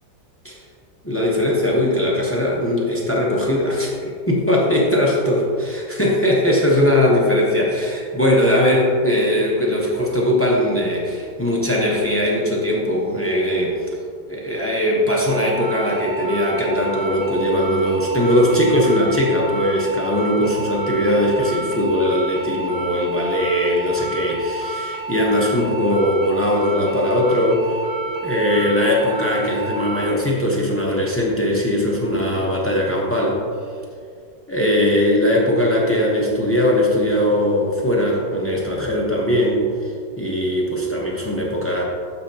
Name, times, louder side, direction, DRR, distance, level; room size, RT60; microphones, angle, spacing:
voice 1, 1.0-13.9 14.3-27.8 28.2-33.4 34.5-41.8, left 1 dB, 20° left, -3 dB, 0.4 m, -20 dB
sound 1, 15.3-30.1, right 2 dB, 55° right, 2.6 m, -30 dB
12.0 x 5.0 x 2.8 m, 2.2 s
omnidirectional pair, 2.0 m